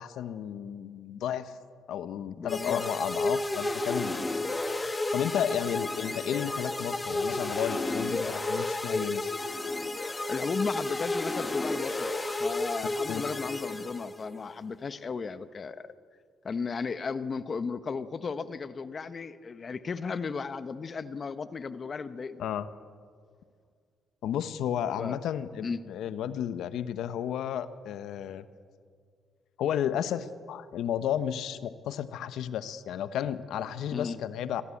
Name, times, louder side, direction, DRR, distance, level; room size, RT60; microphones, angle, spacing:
voice 1, 0.0-1.5 1.9-4.2 5.1-9.3 13.1-13.2 22.4-22.7 24.2-28.4 29.6-34.6, left 9 dB, 80° left, 12 dB, 1.0 m, -32 dB
voice 2, 2.4-2.8 10.3-12.1 12.4-15.9 16.4-22.4 25.0-25.2 25.6-25.8 33.9-34.2, left 5 dB, 40° left, 13 dB, 0.9 m, -35 dB
sound 1, 2.5-14.3, left 2 dB, 20° left, 1.4 m, -32 dB
25.0 x 17.0 x 8.5 m, 2.1 s
cardioid pair, 90°, 0 cm